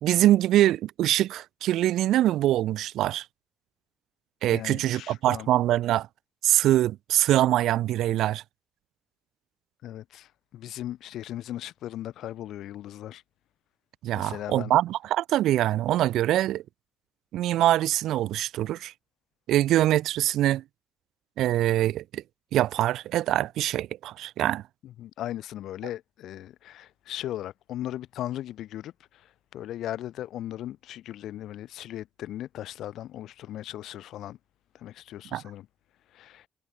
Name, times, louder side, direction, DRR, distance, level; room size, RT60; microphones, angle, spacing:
voice 1, 0.0-3.2 4.4-6.1 6.4-8.4 14.0-16.6 17.3-18.9 19.5-20.6 21.4-22.2 22.5-24.6 35.3-35.4, right 13 dB, 85° right, 0.7 m, -24 dB
voice 2, 4.5-5.5 9.8-13.2 14.1-14.7 24.8-34.4 34.7-35.7 36.1-36.5, left 13 dB, 80° left, 2.0 m, -38 dB
cardioid pair, 90°, 0 cm